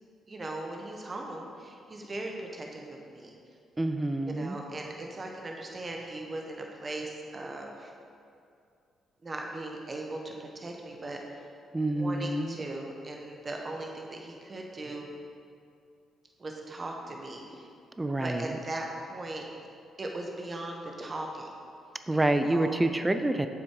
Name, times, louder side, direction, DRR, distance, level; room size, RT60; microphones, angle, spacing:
voice 1, 0.3-3.3 4.3-7.9 9.2-11.4 11.9-15.1 16.4-17.7 18.2-19.4 20.0-21.5 22.1-22.8, right 2 dB, 30° right, 1 dB, 1.1 m, -38 dB
voice 2, 3.8-4.6 11.7-12.6 18.0-18.5 22.1-23.5, right 1 dB, 15° right, 8 dB, 0.4 m, -27 dB
7.4 x 6.2 x 4.7 m, 2.4 s
cardioid pair, 90°, 0 cm